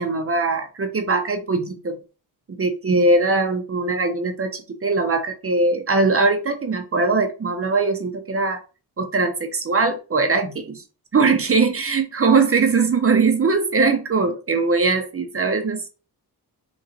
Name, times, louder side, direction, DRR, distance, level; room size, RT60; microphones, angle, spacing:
voice 1, 0.0-2.0 2.6-8.6 9.0-10.8 11.1-15.9, right 3 dB, 35° right, 7 dB, 0.6 m, -21 dB
3.8 x 3.0 x 2.6 m, 0.33 s
wide cardioid pair, 135°, 40 cm